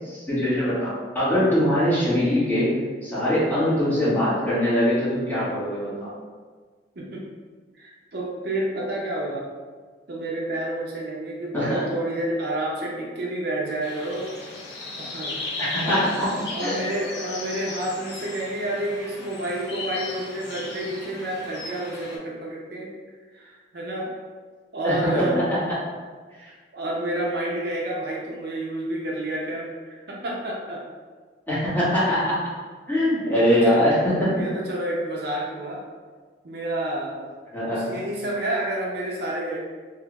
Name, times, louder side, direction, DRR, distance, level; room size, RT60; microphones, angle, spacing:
voice 1, 0.0-2.7 3.0-6.1 11.5-11.9 15.6-16.3 16.6-16.7 24.8-25.8 26.4-26.5 31.5-32.5 32.9-34.5 37.5-38.0, equal, 10° left, -12 dB, 1.5 m, -22 dB
voice 2, 7.0-7.3 7.7-9.5 10.1-14.3 15.0-15.4 15.8-16.1 16.5-22.9 23.3-24.2 24.7-25.4 26.7-30.9 33.2-33.8 34.3-35.8 36.4-37.3 37.7-39.6, right 1 dB, 60° right, -3 dB, 0.5 m, -29 dB
sound 1, 13.8-22.2, left 3 dB, 65° left, 0.8 m, -36 dB
3.4 x 2.4 x 3.0 m, 1.5 s
head